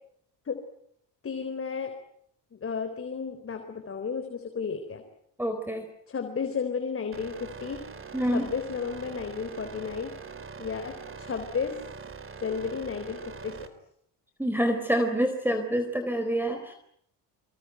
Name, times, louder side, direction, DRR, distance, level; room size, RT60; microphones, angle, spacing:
voice 1, 1.2-1.9 2.5-5.0 6.1-7.8 8.3-10.1 10.6-11.7 12.4-13.6, left 6 dB, 30° left, 6 dB, 4.0 m, -33 dB
voice 2, 5.4-5.9 8.1-8.5 14.4-16.7, equal, 5° right, 7 dB, 4.1 m, -27 dB
sound 1, 7.1-13.7, right 5 dB, 30° right, 3.8 m, -43 dB
26.5 x 23.0 x 9.2 m, 0.71 s
cardioid pair, 100°, 41 cm